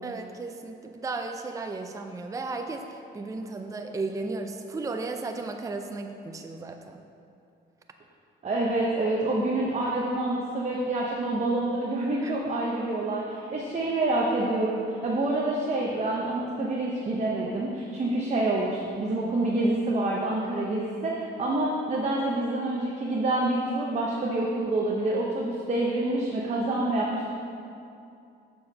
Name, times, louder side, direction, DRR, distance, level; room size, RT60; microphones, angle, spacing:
voice 1, 0.0-7.0 12.2-12.3, right 3 dB, 15° right, 5 dB, 0.5 m, -35 dB
voice 2, 8.4-27.3, right 2 dB, 35° right, -3 dB, 0.9 m, -27 dB
7.3 x 4.6 x 5.3 m, 2.5 s
cardioid pair, 90°, 20 cm